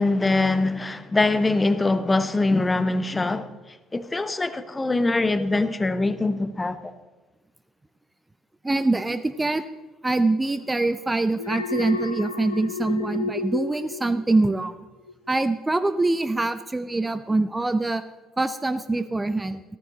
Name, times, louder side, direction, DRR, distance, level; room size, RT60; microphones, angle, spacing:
voice 1, 0.0-3.5 3.9-6.9, left 2 dB, 20° left, 0.9 m, -23 dB
voice 2, 8.6-9.6 10.0-14.8 15.3-18.0 18.4-19.6, right 2 dB, 15° right, 0.6 m, -24 dB
Alarm, 11.4-14.7 15.1-15.4, left 3 dB, 85° left, 0.6 m, -32 dB
14.5 x 14.0 x 4.0 m
figure-of-eight pair, 50°, 0 cm